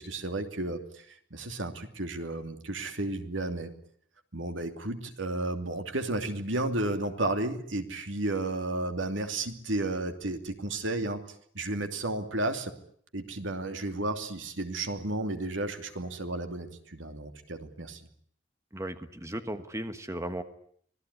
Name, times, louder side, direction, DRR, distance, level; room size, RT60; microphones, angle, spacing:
voice 1, 0.0-3.7 4.3-11.2 11.5-12.7 13.1-18.1, right 2 dB, 85° right, 7 dB, 2.8 m, -33 dB
voice 2, 18.7-20.4, right 1 dB, 15° right, 9 dB, 1.4 m, -36 dB
25.5 x 18.0 x 9.8 m, 0.62 s
head